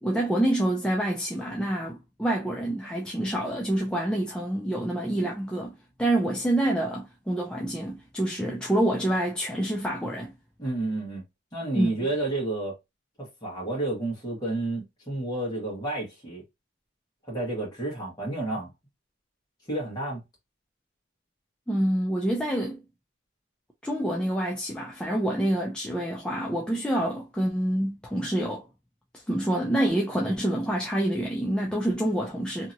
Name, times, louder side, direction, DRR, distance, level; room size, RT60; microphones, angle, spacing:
voice 1, 0.0-10.3 11.7-11.9 21.7-22.8 23.8-28.7 29.3-32.7, right 1 dB, 5° left, 0.4 m, -27 dB
voice 2, 10.6-11.2 11.5-12.7 13.2-16.4 17.2-18.7 19.7-20.2, right 2 dB, 20° left, 1.3 m, -30 dB
2.8 x 2.8 x 2.6 m
head